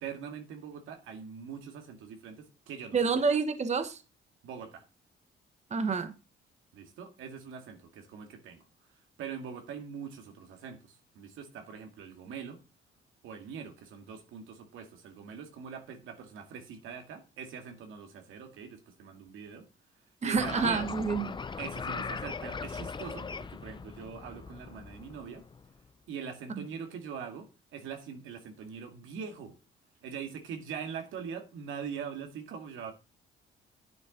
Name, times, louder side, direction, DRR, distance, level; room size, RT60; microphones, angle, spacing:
voice 1, 0.0-3.3 4.4-4.9 6.7-12.6 13.2-19.7 20.2-20.9 21.6-25.5 26.1-29.6 30.0-32.9, right 7 dB, 85° right, 2.1 m, -43 dB
voice 2, 2.9-4.0 5.7-6.1 20.2-21.3 26.6-26.7, right 5 dB, 35° right, 1.1 m, -28 dB
sound 1, 20.3-25.7, left 5 dB, 25° left, 0.6 m, -39 dB
10.5 x 8.7 x 3.8 m
cardioid pair, 90°, 20 cm